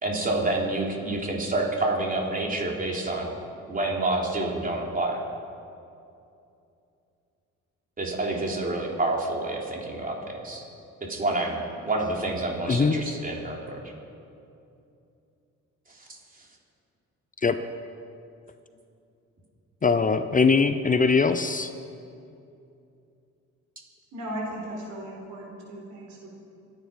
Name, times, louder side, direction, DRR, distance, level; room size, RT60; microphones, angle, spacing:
voice 1, 0.0-3.3 3.7-5.2 8.0-10.2 10.4-10.6 11.1-13.8 16.0-16.1, right 2 dB, 30° right, -1 dB, 3.6 m, -28 dB
voice 2, 12.7-13.0 17.4-17.6 19.8-21.7, left 4 dB, 25° left, 9 dB, 0.7 m, -21 dB
voice 3, 24.1-26.3, right 1 dB, 80° right, -1 dB, 4.4 m, -36 dB
26.5 x 9.7 x 5.3 m, 2.6 s
cardioid pair, 90°, 30 cm